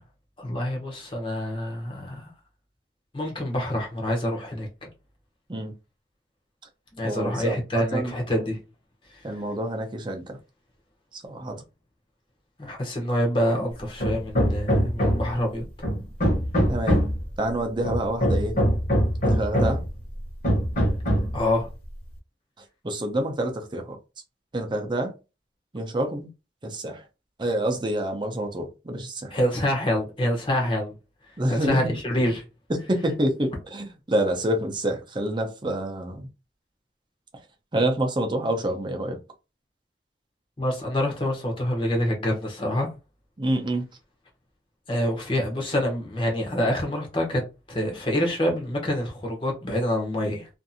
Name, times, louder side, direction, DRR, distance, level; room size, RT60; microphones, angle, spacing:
voice 1, 0.4-2.3 3.1-4.9 6.9-8.6 12.6-15.7 21.3-21.7 29.3-30.9 31.5-32.4 40.6-42.9 44.9-47.4 47.7-50.5, left 1 dB, 30° left, 0.8 m, -26 dB
voice 2, 7.0-8.1 9.2-10.4 11.1-11.6 16.7-17.0 17.4-18.6 19.3-19.8 22.8-24.0 24.5-25.1 25.7-26.3 26.6-27.0 27.4-29.4 31.4-32.0 32.7-36.3 37.7-39.2 43.4-43.9, right 1 dB, 25° right, 0.5 m, -27 dB
Hammer, 14.0-15.4 15.8-17.2 17.8-19.9 20.4-21.4, equal, 45° left, 1.1 m, -22 dB
2.5 x 2.5 x 2.6 m
head